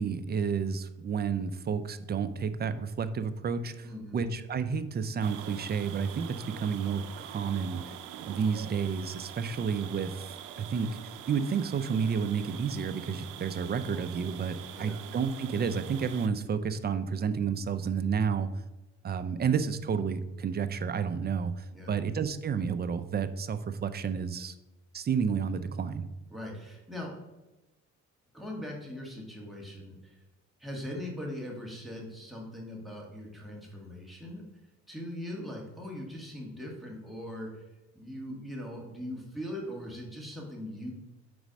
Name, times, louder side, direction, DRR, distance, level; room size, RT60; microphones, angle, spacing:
voice 1, 0.0-3.9 4.1-7.8 8.3-18.5 19.0-24.5 24.9-26.1, right 6 dB, 35° right, 11 dB, 0.5 m, -31 dB
voice 2, 3.8-4.2 14.7-15.0 21.7-22.0 26.3-27.1 28.3-30.2 30.6-34.4 34.9-37.6 37.9-40.9, left 1 dB, ahead, -2 dB, 1.7 m, -40 dB
sound 1, 5.2-16.3, right 10 dB, 90° right, 0.5 m, -44 dB
4.7 x 4.2 x 5.1 m, 1.0 s
cardioid pair, 90°, 30 cm